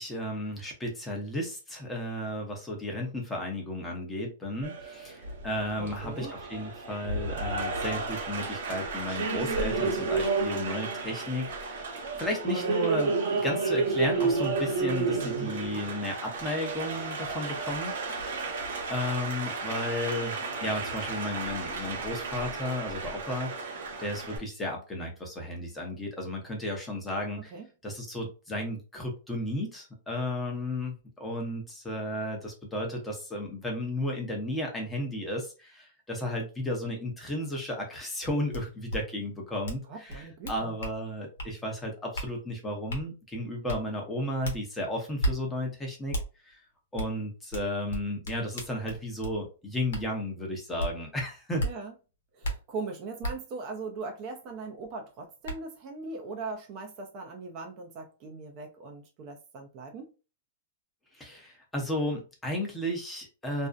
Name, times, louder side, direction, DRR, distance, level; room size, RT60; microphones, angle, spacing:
voice 1, 0.0-11.9 12.2-17.9 18.9-20.3 20.6-27.5 27.8-46.2 46.5-46.6 46.9-51.6 61.1-63.7, left 1 dB, 10° left, 0.7 m, -34 dB
Applause, 4.6-24.4, right 4 dB, 70° right, 0.9 m, -32 dB
voice 2, 5.8-6.3 27.5-27.7 39.9-40.7 51.6-51.9 52.3-60.1, right 3 dB, 35° right, 0.4 m, -40 dB
sound 1, 38.5-38.6 38.9-39.0 39.6-39.8 40.1-41.0 41.4-41.5 42.1-42.3 42.9-43.0 43.7-43.8 44.4-44.6 45.2-45.3 46.1-46.3 47.0-47.1 47.5-49.4 49.9-50.0 50.8-50.9 51.6-51.7 52.4-52.5 53.2-53.3 54.8-54.9 55.4-55.6, right 1 dB, 80° left, 0.9 m, -32 dB
2.5 x 2.0 x 2.4 m
hypercardioid pair, 150°, 0 cm